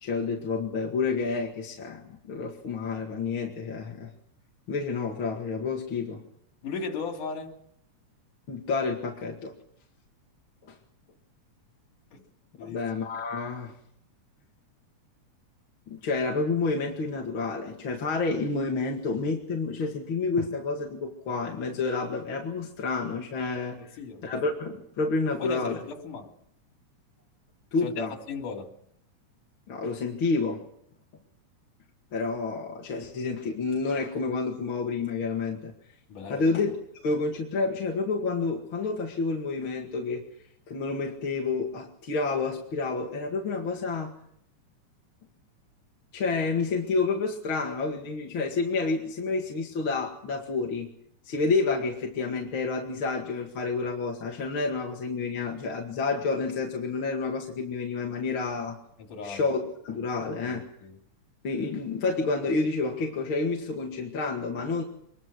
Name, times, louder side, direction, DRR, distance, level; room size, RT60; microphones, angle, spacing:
voice 1, 0.0-4.1 4.7-6.2 8.5-9.5 10.7-10.8 12.6-13.7 15.9-25.8 27.7-28.1 29.7-30.6 32.1-35.7 36.3-36.7 37.0-40.2 40.7-44.1 46.1-50.9 51.3-58.8 59.2-59.6 59.8-60.7 61.4-64.8, left 4 dB, 45° left, 0 dB, 2.6 m, -29 dB
voice 2, 6.6-7.6 12.1-12.2 12.6-12.8 23.9-24.3 25.4-26.3 27.8-28.7 36.1-36.5 59.1-59.5 60.4-61.0, left 5 dB, 85° left, 3 dB, 4.6 m, -36 dB
24.5 x 21.5 x 6.3 m, 0.71 s
omnidirectional pair, 3.5 m